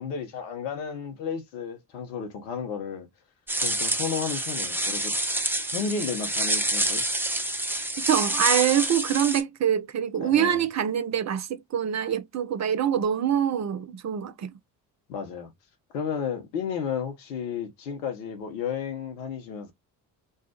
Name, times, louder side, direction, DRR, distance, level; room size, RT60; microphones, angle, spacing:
voice 1, 0.0-3.1 3.6-5.1 5.7-7.0 10.2-10.6 15.1-15.5 15.9-19.7, left 6 dB, 80° left, 1.0 m, -33 dB
sound 1, 3.5-9.4, right 1 dB, 5° right, 1.0 m, -27 dB
voice 2, 8.0-14.5, right 9 dB, 35° right, 0.6 m, -25 dB
3.3 x 2.1 x 2.8 m
figure-of-eight pair, 45°, 49 cm